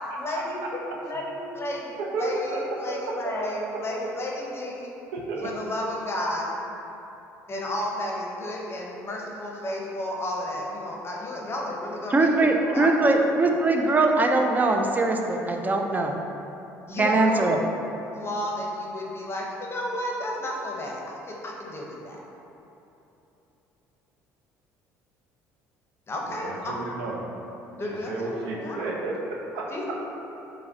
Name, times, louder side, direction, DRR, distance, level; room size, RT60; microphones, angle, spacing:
voice 1, 0.2-4.9 5.4-6.5 7.5-12.9 13.2-13.6 16.9-17.6 18.1-22.2 26.1-26.9 27.8-28.9 29.7-29.9, left 1 dB, 30° left, -2 dB, 0.6 m, -32 dB
voice 2, 2.0-2.6 2.9-3.5 5.1-5.5 26.3-27.2 28.1-29.7, right 3 dB, 80° right, -2 dB, 0.5 m, -32 dB
voice 3, 12.1-16.2 17.0-17.6, right 2 dB, 20° right, 3 dB, 0.4 m, -21 dB
4.6 x 2.1 x 2.6 m, 3.0 s
hypercardioid pair, 70°, 8 cm